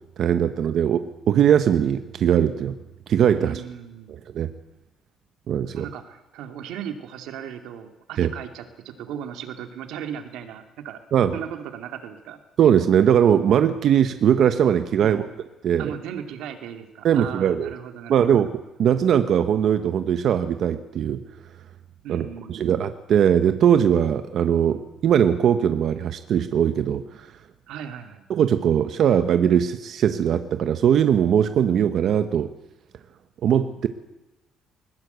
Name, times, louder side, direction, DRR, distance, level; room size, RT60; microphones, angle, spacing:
voice 1, 0.2-2.8 3.1-3.6 4.3-4.5 5.5-5.8 8.2-8.3 11.1-11.3 12.6-15.2 15.6-15.9 17.0-17.7 18.1-21.2 22.1-27.3 28.3-32.5 33.4-33.9, right 9 dB, 45° right, 9 dB, 0.9 m, -20 dB
voice 2, 3.4-4.2 5.7-11.0 11.3-12.4 15.0-15.4 15.8-18.4 22.0-22.8 27.7-28.2, right 9 dB, 90° right, 7 dB, 2.5 m, -37 dB
21.0 x 20.0 x 8.1 m, 0.98 s
cardioid pair, 180°, 0 cm